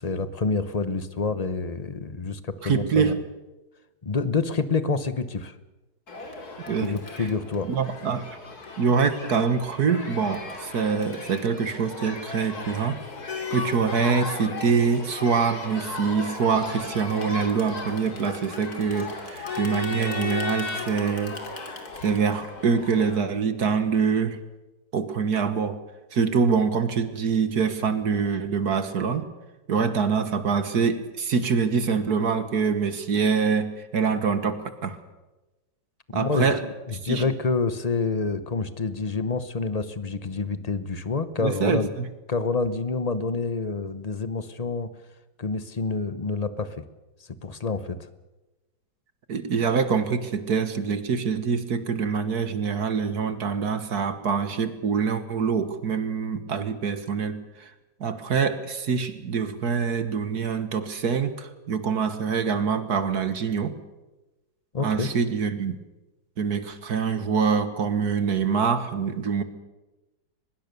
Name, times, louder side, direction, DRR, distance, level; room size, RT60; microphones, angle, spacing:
voice 1, 0.0-3.1 4.0-5.5 6.8-7.7 36.1-41.9 42.3-44.9 45.4-46.8 47.4-48.1 64.7-65.1, left 4 dB, 35° left, 13 dB, 0.7 m, -27 dB
voice 2, 2.6-3.2 6.7-6.9 7.2-7.3 7.7-8.4 8.8-13.0 13.5-21.4 22.0-24.4 24.9-25.8 26.1-29.3 29.7-35.0 36.1-36.7 37.0-37.2 41.4-42.1 49.3-57.7 58.0-63.8 64.8-65.8 66.4-69.4, right 6 dB, 55° right, 11 dB, 1.8 m, -25 dB
Crowd, 6.1-23.2, left 3 dB, 50° left, 3.2 m, -36 dB
23.5 x 21.0 x 6.8 m, 1.1 s
omnidirectional pair, 2.1 m